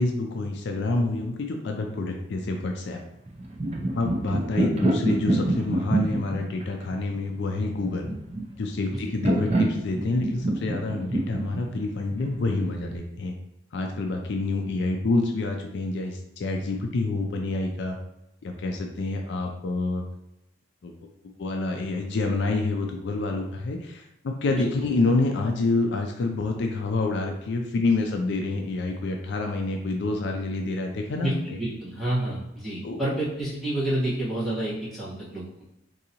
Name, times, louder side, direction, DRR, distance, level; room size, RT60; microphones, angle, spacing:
voice 1, 0.0-3.0 4.0-8.1 8.6-13.3 13.7-18.0 18.4-20.1 20.8-20.9 21.4-31.6 32.8-33.0, left 3 dB, 60° left, 3 dB, 0.4 m, -27 dB
sound 1, 3.3-13.0, right 1 dB, 35° right, 0.5 m, -27 dB
voice 2, 31.2-35.6, right 1 dB, ahead, -11 dB, 1.2 m, -29 dB
3.8 x 2.7 x 2.8 m, 0.86 s
head